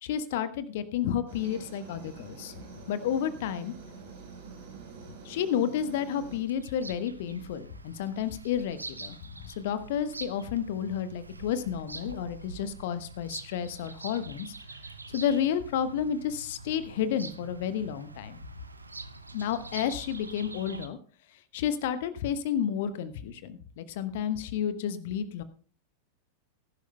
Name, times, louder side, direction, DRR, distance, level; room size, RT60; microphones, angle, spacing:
voice 1, 0.0-2.5 2.9-3.7 5.2-9.2 9.4-14.5 15.1-18.4 19.3-21.0 21.5-25.4, left 9 dB, 55° left, 13 dB, 1.1 m, -31 dB
Aircraft, 1.3-6.4, right 5 dB, 60° right, 4.1 m, -46 dB
Bird vocalization bird call bird song, 6.2-20.9, right 3 dB, 80° right, 0.9 m, -45 dB
20.0 x 11.5 x 2.2 m, 0.43 s
figure-of-eight pair, 90°, 0 cm